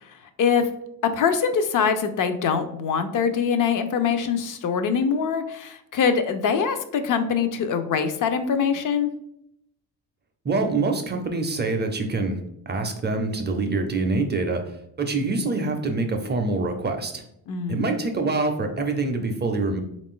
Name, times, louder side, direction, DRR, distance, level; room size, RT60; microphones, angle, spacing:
voice 1, 1.0-9.1 17.5-17.8, left 6 dB, 60° left, 8 dB, 0.5 m, -23 dB
voice 2, 10.4-17.2 17.7-19.8, right 3 dB, 30° right, 5 dB, 0.4 m, -25 dB
3.7 x 2.5 x 3.6 m, 0.75 s
cardioid pair, 120°, 37 cm